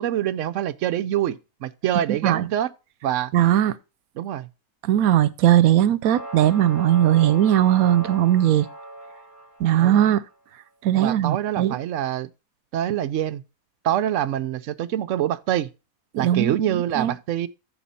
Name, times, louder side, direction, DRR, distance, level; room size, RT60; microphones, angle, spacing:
voice 1, 0.0-2.7 3.0-3.3 4.2-4.5 9.8-10.1 10.9-12.3 12.7-13.4 13.8-15.7 16.2-17.5, right 11 dB, 65° right, 1.0 m, -25 dB
voice 2, 2.1-2.5 3.3-3.7 4.8-8.7 9.6-10.2 10.8-11.8 16.1-17.1, right 11 dB, 90° right, 1.1 m, -19 dB
sound 1, 6.1-10.1, right 1 dB, 40° left, 3.4 m, -38 dB
13.5 x 4.9 x 4.2 m
omnidirectional pair, 1.5 m